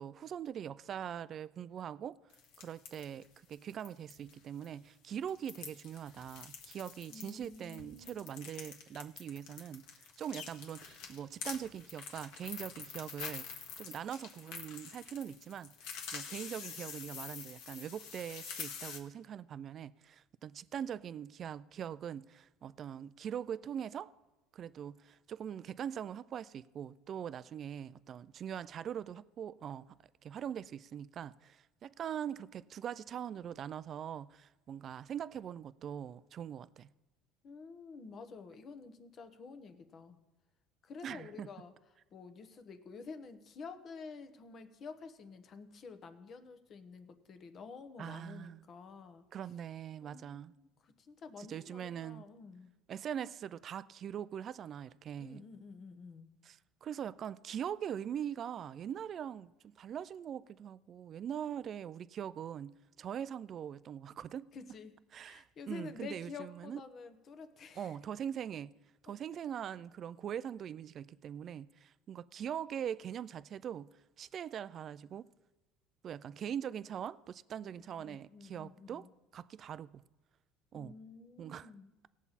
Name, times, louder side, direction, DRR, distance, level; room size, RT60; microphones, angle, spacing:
voice 1, 0.0-2.2 2.6-9.8 10.2-15.7 16.1-24.1 24.5-29.9 30.2-36.9 41.0-41.5 48.0-48.6 49.3-50.5 51.4-52.3 52.9-55.4 56.4-64.5 65.1-66.8 67.8-68.7 69.0-73.9 74.2-75.3 76.0-79.1 79.3-80.0 80.7-80.9 81.4-81.7, right 9 dB, 40° right, 0.3 m, -42 dB
sound 1, 2.3-4.3 4.6-4.7 5.2-19.0, left 6 dB, 70° left, 1.6 m, -46 dB
voice 2, 7.1-8.4 37.4-40.2 40.8-41.7 42.1-49.2 50.0-52.7 55.2-56.3 64.5-65.0 65.2-68.0 69.1-69.2 77.7-79.1 80.7-82.1, left 4 dB, 40° left, 1.0 m, -50 dB
18.0 x 7.1 x 4.1 m
cardioid pair, 125°, 0 cm